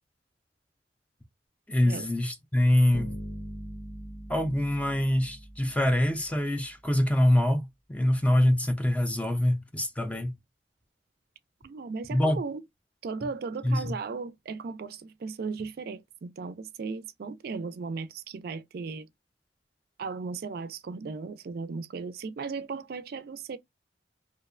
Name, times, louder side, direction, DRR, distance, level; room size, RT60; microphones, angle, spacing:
voice 1, 1.7-3.2 4.3-10.4 12.1-12.4 13.6-13.9, left 1 dB, 10° left, 0.4 m, -25 dB
Bass guitar, 2.9-6.0, equal, 80° left, 1.2 m, -41 dB
voice 2, 11.6-12.6 13.0-19.1 20.0-23.6, right 4 dB, 60° right, 0.3 m, -36 dB
2.7 x 2.0 x 2.3 m
head